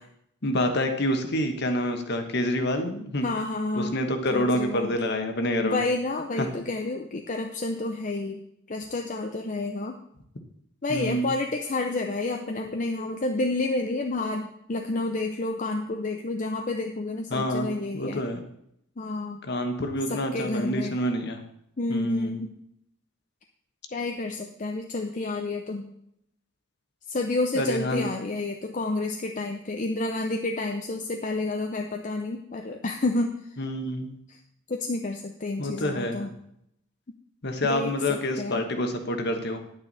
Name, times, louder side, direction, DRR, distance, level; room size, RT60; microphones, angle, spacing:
voice 1, 0.4-3.2 3.8-5.8 6.4-6.5 10.9-11.3 17.3-17.7 17.9-18.4 19.4-21.4 21.9-22.4 27.5-28.0 33.6-34.2 35.6-36.3 37.4-39.6, left 1 dB, 55° left, 6 dB, 1.2 m, -27 dB
voice 2, 3.2-4.0 4.3-4.9 5.6-8.4 8.7-9.9 10.8-18.2 19.0-19.4 20.1-21.0 21.8-22.5 23.9-25.9 27.1-33.4 34.7-36.3 37.6-38.6, left 2 dB, 40° left, 4 dB, 0.6 m, -30 dB
10.0 x 9.0 x 4.1 m, 0.75 s
head